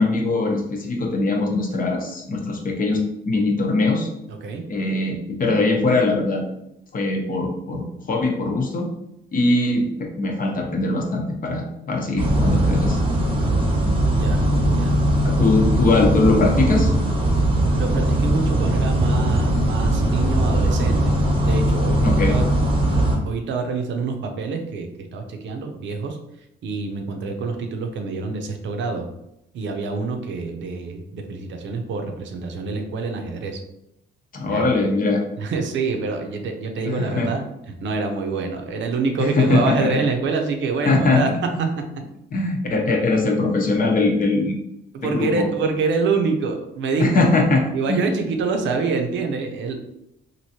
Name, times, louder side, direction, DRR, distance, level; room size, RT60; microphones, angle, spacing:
voice 1, 0.0-4.1 4.7-6.4 6.9-8.9 9.3-13.0 15.2-16.9 22.0-22.4 34.3-35.2 36.8-37.3 39.2-40.0 40.9-41.7 42.3-44.6 45.0-45.5 47.0-48.0, left 2 dB, 45° left, 1 dB, 0.8 m, -21 dB
voice 2, 4.3-4.6 14.1-15.0 17.7-22.4 22.9-26.2 26.6-29.1 29.5-33.6 34.5-34.9 35.4-37.4 37.8-41.3 41.6-41.8 44.9-47.1 47.7-49.8, right 4 dB, 70° right, 4 dB, 0.6 m, -26 dB
sound 1, 12.2-23.2, right 1 dB, 25° right, 0.8 m, -20 dB
3.0 x 2.6 x 2.8 m, 0.83 s
cardioid pair, 90°, 20 cm